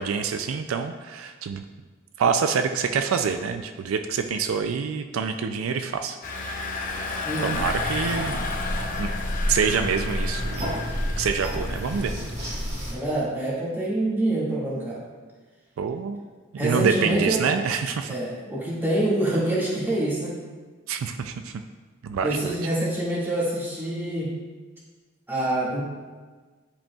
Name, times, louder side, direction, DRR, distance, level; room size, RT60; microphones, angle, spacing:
voice 1, 0.0-1.6 2.2-6.2 7.4-8.4 9.0-9.1 9.5-10.7 11.2-12.2 15.8-16.2 16.5-18.1 20.9-21.6 22.0-22.4, right 6 dB, 75° right, 7 dB, 0.4 m, -26 dB
Engine, 6.2-12.1, left 3 dB, 40° left, 0.6 m, -32 dB
voice 2, 7.2-7.7 12.9-15.0 16.6-17.5 18.1-20.4 22.2-24.4 25.3-25.8, right 1 dB, 10° right, -8 dB, 1.9 m, -26 dB
sound 1, 7.5-12.9, equal, 30° right, 1.9 m, -30 dB
10.0 x 5.1 x 2.3 m, 1.4 s
head